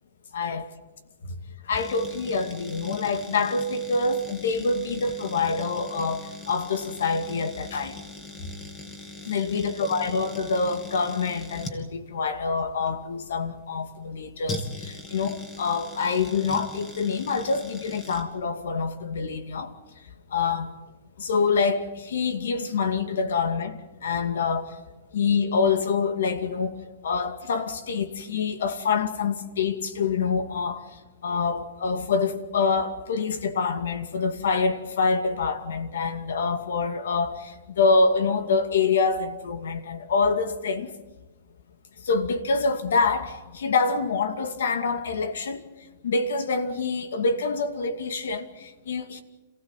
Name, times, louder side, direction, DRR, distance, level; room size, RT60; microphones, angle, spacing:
voice 1, 0.3-0.7 1.3-1.4 1.6-8.0 9.2-19.7 20.3-20.7 21.2-24.8 25.1-26.8 27.0-40.9 42.0-45.6 46.0-49.2, left 4 dB, 85° left, 2.4 m, -26 dB
sound 1, 1.7-18.2, left 2 dB, 20° left, 2.7 m, -41 dB
28.0 x 16.0 x 9.2 m
hypercardioid pair, 155°, 0 cm